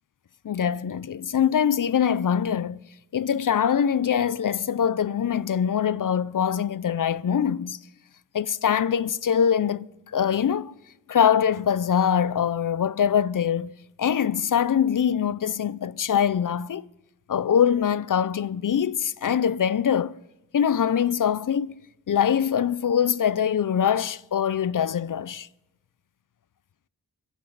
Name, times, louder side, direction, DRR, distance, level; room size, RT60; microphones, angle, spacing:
voice 1, 0.4-2.8 3.1-7.8 8.3-9.9 10.1-10.7 11.1-13.7 14.0-16.9 17.3-20.1 20.5-21.8 22.1-25.5, left 8 dB, 60° left, 0.6 m, -23 dB
29.0 x 10.0 x 4.1 m
cardioid pair, 40°, 35 cm